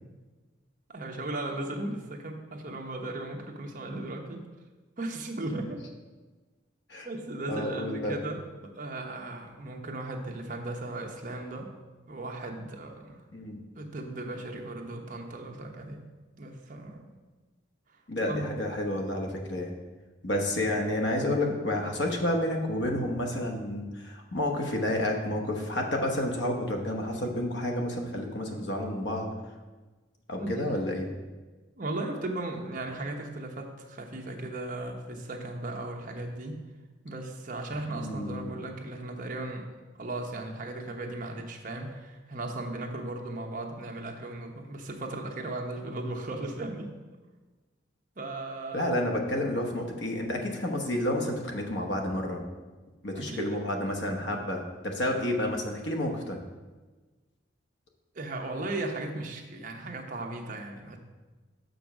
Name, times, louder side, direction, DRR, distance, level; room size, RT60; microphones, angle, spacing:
voice 1, 0.9-4.4 5.0-5.8 7.0-11.7 12.1-13.2 13.8-16.0 16.4-17.1 18.2-18.5 30.4-30.7 31.8-36.6 37.0-39.7 40.0-46.9 48.2-48.9 53.1-53.7 58.1-61.0, right 2 dB, 45° right, 2 dB, 0.9 m, -36 dB
voice 2, 7.5-8.2 13.3-13.6 18.1-19.7 20.2-29.3 30.3-31.1 37.9-38.5 48.7-52.5 53.0-56.4, left 1 dB, 65° left, 2 dB, 1.1 m, -30 dB
6.2 x 5.1 x 6.0 m, 1.3 s
head